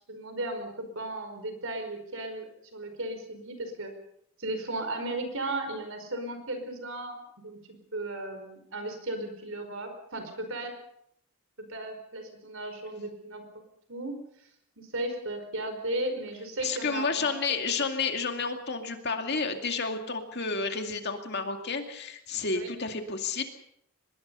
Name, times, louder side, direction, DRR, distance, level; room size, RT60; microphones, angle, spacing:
voice 1, 0.1-3.9 4.4-7.6 7.9-10.7 11.6-13.4 13.9-14.2 14.8-17.8 22.5-22.7, right 1 dB, 65° right, 7 dB, 5.0 m, -35 dB
voice 2, 16.6-23.4, left 4 dB, 50° left, 5 dB, 2.3 m, -31 dB
24.0 x 21.0 x 5.6 m, 0.70 s
head